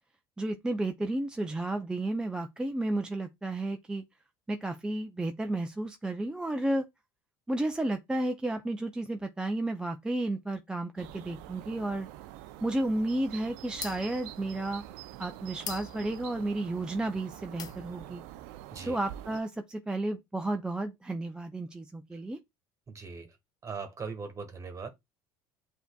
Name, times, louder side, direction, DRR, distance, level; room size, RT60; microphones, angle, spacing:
voice 1, 0.4-4.0 4.5-6.9 7.5-12.1 12.6-14.8 15.2-18.2 18.9-22.4, right 2 dB, 10° right, 0.4 m, -32 dB
sound 1, 11.0-19.4, right 13 dB, 75° right, 0.4 m, -46 dB
sound 2, 11.6-17.2 17.5-18.2, left 7 dB, 40° left, 0.6 m, -45 dB
voice 2, 22.9-23.3 23.6-24.9, right 5 dB, 30° right, 1.3 m, -40 dB
7.9 x 2.7 x 2.2 m
supercardioid pair, 90°, 10 cm